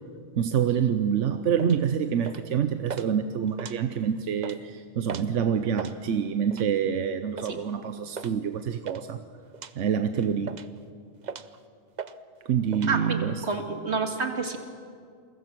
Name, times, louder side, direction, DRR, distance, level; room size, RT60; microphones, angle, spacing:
voice 1, 0.4-9.2 9.8-10.6 12.4-13.4, right 8 dB, 85° right, 9 dB, 1.1 m, -26 dB
sound 1, 1.6-1.8 2.2-2.5 2.9-3.1 3.5-4.1 4.4-4.6 5.1-5.3 5.6-6.0 6.5-6.8 7.4-7.6 8.2-8.3 8.6-9.0 9.5-9.7 10.2-10.8 11.2-11.6 12.0-12.2 12.4-12.9, right 6 dB, 45° right, 0.7 m, -38 dB
voice 2, 12.9-14.6, right 4 dB, 65° right, 4 dB, 2.2 m, -29 dB
28.0 x 22.5 x 6.1 m, 2.2 s
omnidirectional pair, 1.2 m